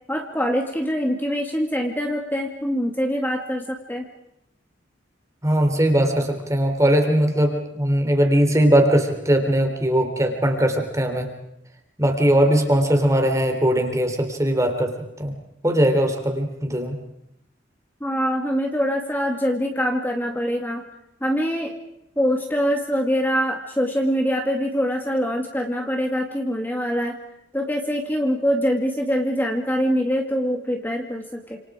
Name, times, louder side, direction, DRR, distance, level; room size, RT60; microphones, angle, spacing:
voice 1, 0.1-4.1 18.0-20.8 21.2-21.7 22.2-27.2 27.5-31.6, equal, 10° left, 2 dB, 2.2 m, -24 dB
voice 2, 5.4-11.3 12.0-17.0, right 1 dB, 15° right, 5 dB, 3.6 m, -20 dB
29.0 x 27.5 x 5.1 m, 0.83 s
head